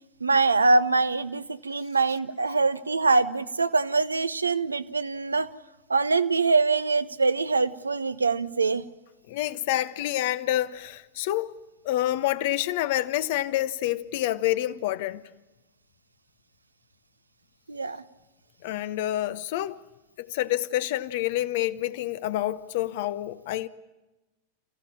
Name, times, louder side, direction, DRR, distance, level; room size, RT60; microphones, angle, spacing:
voice 1, 0.2-5.5 5.9-8.9 17.7-18.0, right 3 dB, 80° right, 0.8 m, -24 dB
voice 2, 9.3-11.5 11.8-15.2 18.6-19.8 20.2-23.7, left 14 dB, 50° left, 0.9 m, -28 dB
28.0 x 15.5 x 9.9 m
figure-of-eight pair, 90°, 0 cm